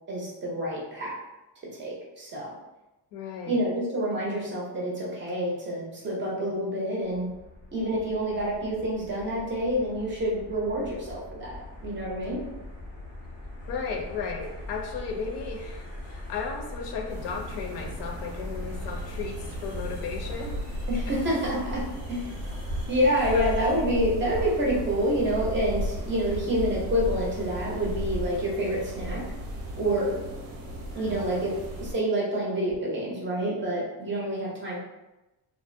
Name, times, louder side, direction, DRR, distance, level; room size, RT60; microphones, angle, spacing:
voice 1, 0.1-1.1 1.8-2.5 3.4-7.3 7.7-12.4 20.9-22.4 22.9-29.2 29.8-30.2 31.0-34.8, equal, 25° right, -4 dB, 0.5 m, -28 dB
voice 2, 3.1-3.6 6.4-6.5 13.7-20.6 23.3-23.4 30.9-31.4, left 5 dB, 70° left, 2 dB, 0.5 m, -35 dB
sound 1, 7.0-23.8, left 1 dB, 20° left, 0.5 m, -41 dB
sound 2, 17.1-31.9, equal, 85° right, 0.7 m, -35 dB
2.5 x 2.0 x 2.5 m, 0.98 s
cardioid pair, 160°, 44 cm